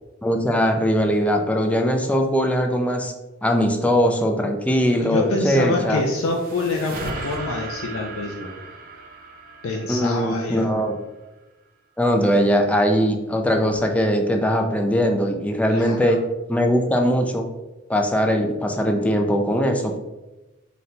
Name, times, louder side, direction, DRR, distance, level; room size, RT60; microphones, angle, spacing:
voice 1, 0.2-3.1 3.4-6.0 9.9-10.9 12.0-16.2 16.5-17.5 17.9-20.0, equal, 5° left, 4 dB, 0.3 m, -20 dB
voice 2, 4.9-8.5 9.6-10.7 15.7-16.2, left 2 dB, 85° left, 0 dB, 0.5 m, -26 dB
sound 1, 5.7-11.1, right 3 dB, 45° right, 0.6 m, -37 dB
4.1 x 2.2 x 3.9 m, 1.0 s
head